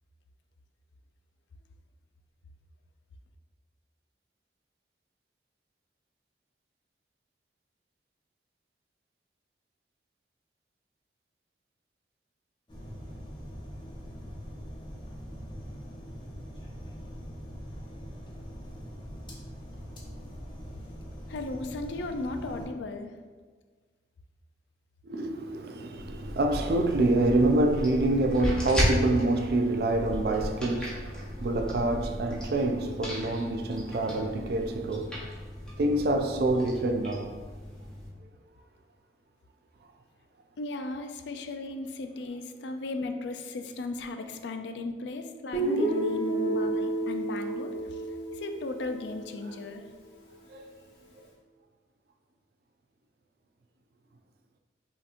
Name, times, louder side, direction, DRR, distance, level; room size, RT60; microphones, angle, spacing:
sound 1, 12.7-22.7, equal, 25° left, 0.7 m, -42 dB
voice 1, 21.3-23.1 25.4-25.5 40.6-47.7 48.3-49.8, left 2 dB, 80° left, 0.4 m, -36 dB
voice 2, 25.0-35.3 35.8-37.4 38.2-38.3 46.4-46.6 49.4-49.6 50.5-50.7, right 2 dB, 60° right, 0.4 m, -27 dB
sound 2, 25.9-38.1, equal, 5° left, 0.9 m, -35 dB
Guitar, 45.5-49.5, right 2 dB, 60° left, 0.9 m, -30 dB
5.5 x 2.9 x 2.5 m
head